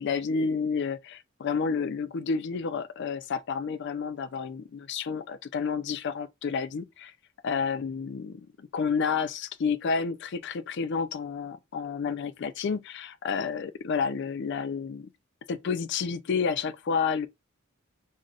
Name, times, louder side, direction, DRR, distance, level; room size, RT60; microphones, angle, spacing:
voice 1, 0.0-7.1 7.4-15.1 15.5-17.3, left 5 dB, 55° left, 0.4 m, -30 dB
5.2 x 2.1 x 2.4 m
head